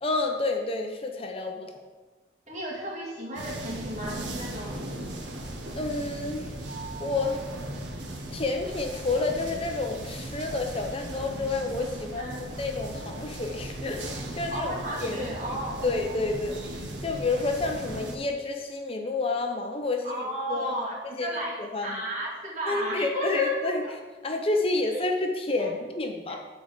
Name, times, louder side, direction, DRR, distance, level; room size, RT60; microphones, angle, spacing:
voice 1, 0.0-1.7 5.7-6.5 7.0-7.5 8.3-14.7 15.0-15.3 15.8-16.7 17.0-20.8 21.2-21.3 21.6-22.0 22.7-23.8 24.2-26.4, left 3 dB, 30° left, 3 dB, 0.6 m, -29 dB
voice 2, 2.5-5.0 12.2-12.4 14.5-15.8 20.0-21.6 21.8-23.9 24.9-25.0 25.6-25.7 26.3-26.4, right 1 dB, 40° right, -5 dB, 2.9 m, -34 dB
sound 1, 3.3-18.2, right 1 dB, 85° right, 1.3 m, -37 dB
8.8 x 4.7 x 6.7 m, 1.3 s
head